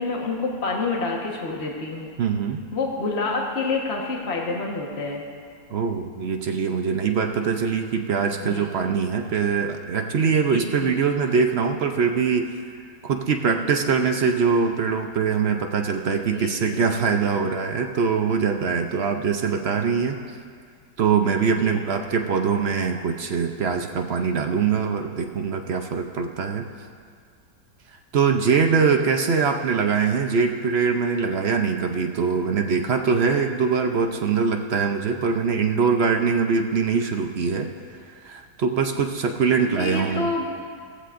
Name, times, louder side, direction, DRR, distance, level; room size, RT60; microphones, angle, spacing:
voice 1, 0.0-2.1 2.7-5.2 8.4-8.7 10.5-11.0 16.1-16.8 21.5-21.8 39.8-40.5, left 3 dB, 40° left, -1 dB, 1.5 m, -28 dB
voice 2, 2.2-2.6 5.7-12.5 13.0-20.2 21.0-26.7 28.1-37.7 38.1-40.3, right 5 dB, 65° right, 4 dB, 0.6 m, -23 dB
18.5 x 15.0 x 2.6 m, 2.1 s
omnidirectional pair, 1.9 m